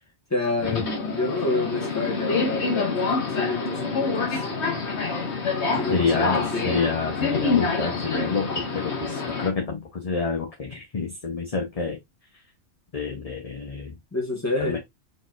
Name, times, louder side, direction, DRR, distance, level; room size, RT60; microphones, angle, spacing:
voice 1, 0.3-3.0 3.3-4.3 5.8-6.8 14.1-14.8, left 2 dB, 15° left, 1.4 m, -28 dB
Subway metro underground, 0.6-9.5, left 4 dB, 65° left, 1.5 m, -26 dB
voice 2, 5.9-12.0 12.9-14.0 14.6-14.8, left 4 dB, 35° left, 0.8 m, -28 dB
4.2 x 3.9 x 2.5 m
omnidirectional pair, 1.2 m